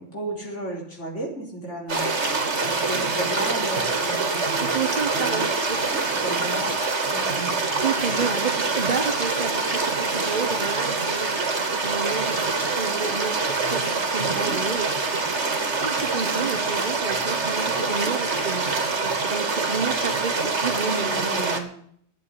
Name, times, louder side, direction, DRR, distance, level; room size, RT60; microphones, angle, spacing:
voice 1, 0.0-2.1 2.6-5.4 6.1-6.8 7.1-7.6 20.8-21.8, right 1 dB, 80° left, -1 dB, 4.5 m, -34 dB
sound 1, 1.9-21.6, right 3 dB, 70° right, 2.1 m, -25 dB
voice 2, 4.6-6.2 7.8-11.4 11.8-15.5 15.8-21.6, right 6 dB, 40° right, 12 dB, 1.0 m, -31 dB
12.5 x 8.2 x 9.8 m, 0.63 s
omnidirectional pair, 1.2 m